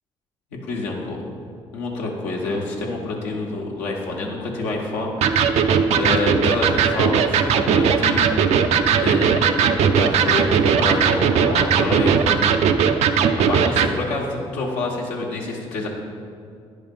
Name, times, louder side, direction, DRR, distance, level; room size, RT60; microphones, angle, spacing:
voice 1, 0.6-1.2 1.7-5.4 5.9-8.6 9.0-12.4 13.5-15.9, left 2 dB, 85° left, -2 dB, 1.2 m, -27 dB
Electric guitar, 5.2-13.9, right 6 dB, 65° right, 0.4 m, -18 dB
9.8 x 3.6 x 5.3 m, 2.4 s
supercardioid pair, 60°, 12 cm